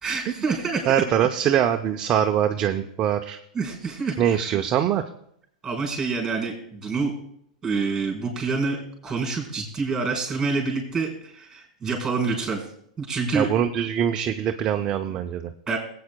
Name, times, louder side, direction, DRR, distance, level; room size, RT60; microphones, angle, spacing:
voice 1, 0.0-0.9 3.5-4.6 5.6-7.2 7.6-12.7 13.0-13.5 15.7-15.8, right 4 dB, 10° right, 1 dB, 4.0 m, -27 dB
voice 2, 0.9-3.4 4.2-5.0 13.3-15.5, right 9 dB, 30° right, 5 dB, 0.5 m, -23 dB
20.5 x 8.5 x 2.2 m, 0.72 s
hypercardioid pair, 140°, 4 cm